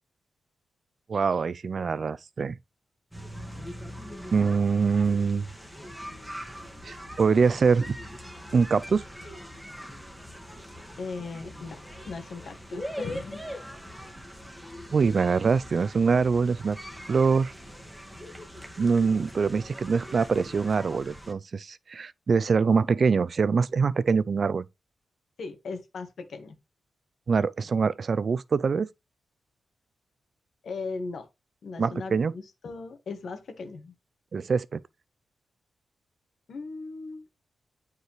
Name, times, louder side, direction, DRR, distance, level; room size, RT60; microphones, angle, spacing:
voice 1, 1.1-2.6 4.3-5.5 6.8-8.0 8.5-9.0 14.9-16.8 17.1-17.5 18.8-24.7 27.3-28.9 31.8-32.3 34.3-34.8, right 5 dB, 55° right, 0.5 m, -24 dB
sound 1, 3.1-21.3, equal, 5° right, 1.8 m, -42 dB
voice 2, 11.0-11.8 12.1-13.4 25.4-26.6 30.6-31.3 31.6-33.9 36.5-37.3, left 4 dB, 70° left, 1.8 m, -38 dB
9.1 x 4.8 x 3.2 m
cardioid pair, 80°, 0 cm